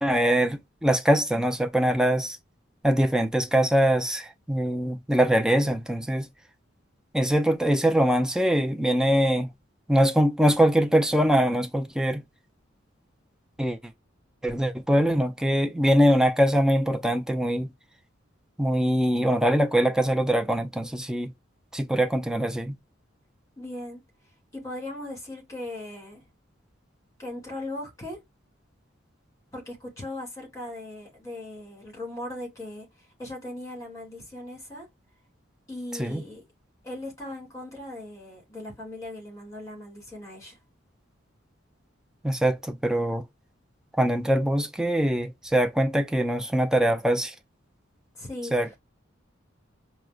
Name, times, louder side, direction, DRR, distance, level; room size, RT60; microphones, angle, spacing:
voice 1, 0.0-2.4 2.8-6.3 7.1-9.5 9.9-12.2 13.6-13.8 14.4-17.7 18.6-21.3 21.7-22.7 36.0-36.2 42.2-43.2 44.0-47.3 48.5-48.8, right 1 dB, 5° right, 0.4 m, -23 dB
voice 2, 23.6-24.0 24.5-26.2 27.2-28.2 29.5-34.9 35.7-36.4 36.8-40.6 48.1-48.5, left 1 dB, 15° left, 2.2 m, -38 dB
4.7 x 2.1 x 2.3 m
head